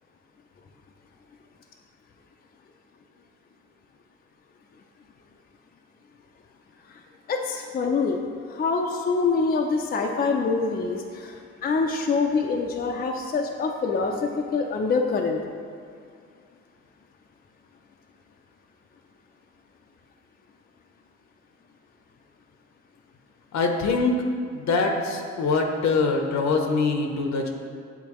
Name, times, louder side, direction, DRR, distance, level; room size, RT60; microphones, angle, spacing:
voice 1, 7.3-8.2 8.5-15.4, left 4 dB, 30° left, 2 dB, 0.4 m, -25 dB
voice 2, 23.5-24.2 24.5-27.5, left 4 dB, 65° left, 3 dB, 0.8 m, -23 dB
8.4 x 3.9 x 3.0 m, 2.2 s
cardioid pair, 90°, 30 cm